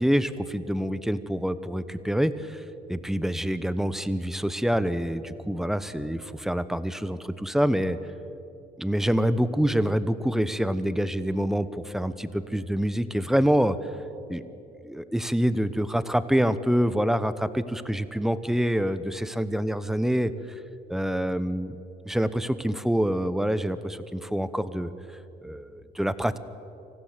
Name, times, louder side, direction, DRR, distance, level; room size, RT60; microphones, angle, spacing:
voice 1, 0.0-2.6 2.9-8.0 8.8-13.8 14.3-14.4 14.8-20.6 20.9-21.8 22.0-24.9 25.4-26.4, equal, ahead, 13 dB, 0.9 m, -26 dB
25.5 x 15.5 x 8.0 m, 2.8 s
cardioid pair, 110°, 17 cm